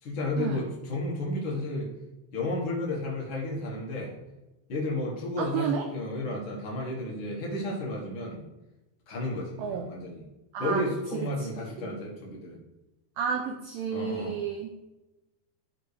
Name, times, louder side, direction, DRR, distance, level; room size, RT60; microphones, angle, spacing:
voice 1, 0.0-1.9 2.3-4.2 4.7-8.4 9.1-10.2 10.6-12.6 13.9-14.4, left 1 dB, 55° left, -2 dB, 1.4 m, -32 dB
voice 2, 5.4-5.9 9.6-9.9 10.5-10.8 11.1-11.5 11.8-11.9 13.2-14.7, right 6 dB, 80° right, 2 dB, 2.1 m, -31 dB
13.0 x 4.8 x 3.4 m, 1.0 s
omnidirectional pair, 4.7 m